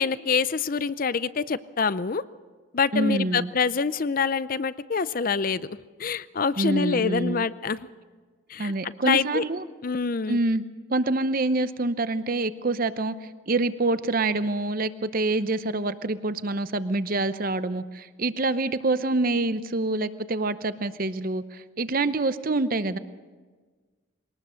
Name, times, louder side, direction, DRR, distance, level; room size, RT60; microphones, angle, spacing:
voice 1, 0.0-2.2 2.7-5.6 6.0-7.9 8.5-9.4 9.8-10.4, left 5 dB, 45° left, 16 dB, 0.5 m, -26 dB
voice 2, 2.9-3.5 6.6-7.4 8.6-9.6 10.3-10.6 10.9-13.1 13.5-23.0, right 2 dB, 45° right, 13 dB, 0.8 m, -26 dB
22.0 x 19.0 x 6.4 m, 1.4 s
head